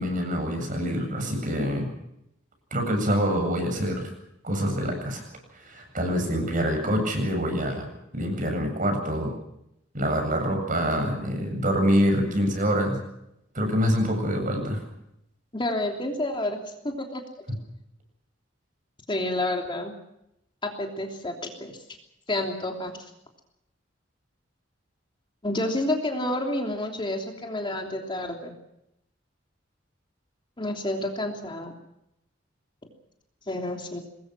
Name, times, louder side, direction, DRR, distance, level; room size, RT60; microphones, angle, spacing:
voice 1, 0.0-1.9 2.7-4.1 4.4-5.3 5.6-7.9 8.1-9.3 9.9-13.0 13.5-14.8, equal, 45° right, 5 dB, 7.9 m, -25 dB
voice 2, 15.5-16.6 16.8-17.2 19.1-19.9 20.6-21.8 22.3-22.9 25.4-28.5 30.6-31.7 33.5-34.0, left 1 dB, 25° left, 2 dB, 3.1 m, -29 dB
25.5 x 20.5 x 6.2 m, 0.81 s
head